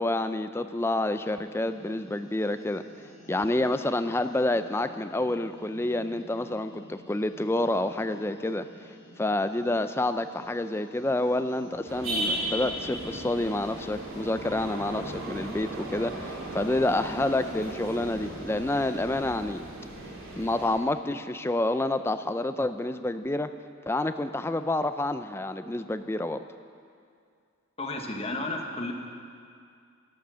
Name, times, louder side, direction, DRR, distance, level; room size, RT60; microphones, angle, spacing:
voice 1, 0.0-2.8 3.3-8.7 9.2-19.6 20.4-23.5 23.9-26.4, left 2 dB, 10° left, 10 dB, 0.4 m, -28 dB
sound 1, 1.1-19.4, equal, 65° left, 2.9 m, -52 dB
sound 2, 11.9-20.8, right 1 dB, 80° right, 2.6 m, -36 dB
voice 2, 27.8-28.9, left 2 dB, 30° left, 2 dB, 1.2 m, -32 dB
13.0 x 12.0 x 6.2 m, 2.3 s
head